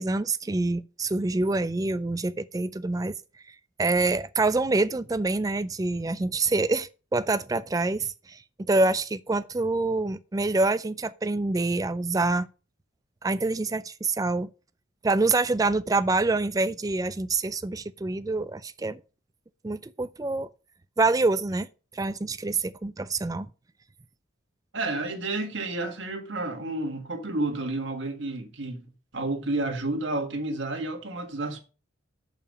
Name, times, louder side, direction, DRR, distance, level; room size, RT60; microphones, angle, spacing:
voice 1, 0.0-3.1 3.8-8.4 8.7-12.5 13.2-14.5 15.0-19.0 19.6-20.5 21.0-21.7 21.9-23.5, right 3 dB, 15° right, 0.3 m, -26 dB
voice 2, 24.7-31.6, right 2 dB, 60° right, 1.7 m, -31 dB
6.8 x 5.7 x 5.3 m
head